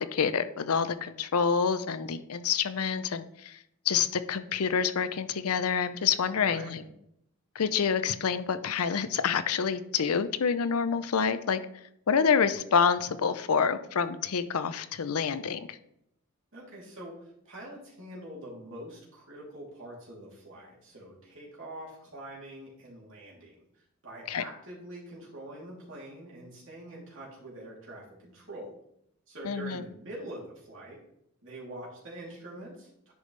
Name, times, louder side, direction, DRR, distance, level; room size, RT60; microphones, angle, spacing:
voice 1, 0.0-3.6 3.9-6.8 7.5-11.6 12.1-15.8 24.3-24.4 29.4-29.8, left 6 dB, 85° left, 12 dB, 0.5 m, -27 dB
voice 2, 6.4-6.9 16.5-28.7 29.3-31.0 31.4-33.1, right 1 dB, 60° right, -5 dB, 3.0 m, -45 dB
10.5 x 5.2 x 3.2 m, 0.75 s
head